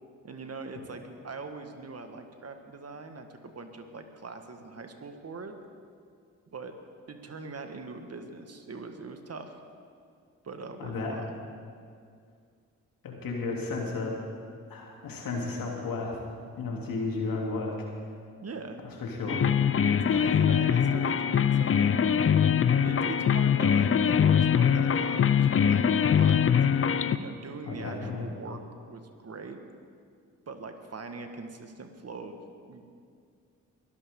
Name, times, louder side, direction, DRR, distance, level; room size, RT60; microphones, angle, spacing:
voice 1, 0.2-5.6 6.5-6.7 7.1-9.6 10.4-11.3 18.4-18.8 19.8-22.3 22.8-26.5 27.1-29.6 30.5-32.8, right 3 dB, 40° right, 6 dB, 1.7 m, -42 dB
voice 2, 10.8-11.1 13.0-14.1 14.7-16.2 16.6-17.7 19.0-19.4 20.1-20.2 27.6-28.3, left 3 dB, 65° left, -1 dB, 3.2 m, -33 dB
sound 1, 19.3-27.2, left 8 dB, 35° left, 0.7 m, -23 dB
22.5 x 13.0 x 3.8 m, 2.3 s
hypercardioid pair, 45°, 36 cm